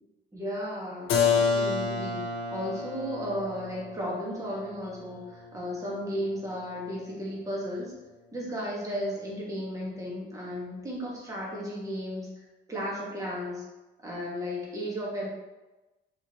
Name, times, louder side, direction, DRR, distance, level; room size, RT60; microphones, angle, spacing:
voice 1, 0.3-7.9 8.3-12.3 12.7-13.6 14.0-15.3, equal, 15° right, -5 dB, 1.3 m, -34 dB
Keyboard (musical), 1.1-6.7, left 5 dB, 85° left, 0.7 m, -30 dB
4.6 x 3.2 x 2.9 m, 1.1 s
cardioid pair, 90°, 20 cm